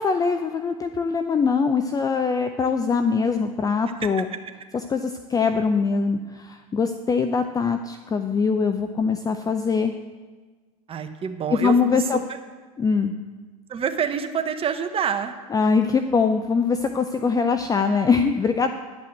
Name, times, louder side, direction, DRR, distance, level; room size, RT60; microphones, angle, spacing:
voice 1, 0.0-4.3 4.9-9.9 11.5-12.2 12.8-13.1 15.5-18.7, left 5 dB, 20° left, 8 dB, 0.5 m, -22 dB
voice 2, 10.9-12.4 13.7-15.4, right 7 dB, 30° right, 7 dB, 1.0 m, -27 dB
10.5 x 5.7 x 7.5 m, 1.4 s
hypercardioid pair, 90°, 19 cm